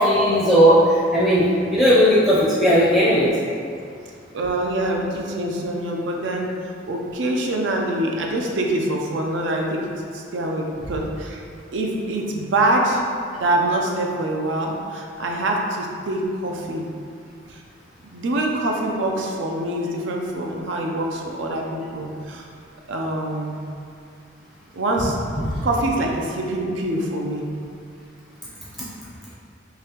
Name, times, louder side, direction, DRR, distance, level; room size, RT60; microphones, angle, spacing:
voice 1, 0.0-3.3 25.5-25.6, equal, 5° right, -9 dB, 0.6 m, -16 dB
voice 2, 4.3-6.5 6.9-11.4 11.7-13.1 13.4-16.9 17.5-17.6 18.0-22.5 22.9-23.6 24.7-25.2 25.6-27.5, right 1 dB, 75° right, 0 dB, 0.5 m, -25 dB
3.9 x 2.8 x 2.9 m, 2.4 s
head